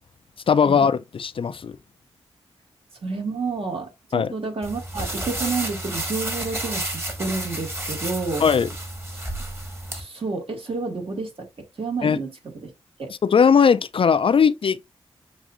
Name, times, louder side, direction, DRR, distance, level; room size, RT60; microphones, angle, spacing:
voice 1, 0.5-1.7 4.1-4.3 8.4-8.7 12.0-12.2 13.2-14.9, left 6 dB, 50° left, 0.4 m, -19 dB
voice 2, 3.0-8.4 9.9-11.5 11.8-12.3 12.6-12.7 13.0-13.1, right 4 dB, 55° right, 1.9 m, -30 dB
sound 1, 4.6-10.0, right 1 dB, 20° right, 1.6 m, -31 dB
7.1 x 2.6 x 2.5 m
cardioid pair, 45°, 11 cm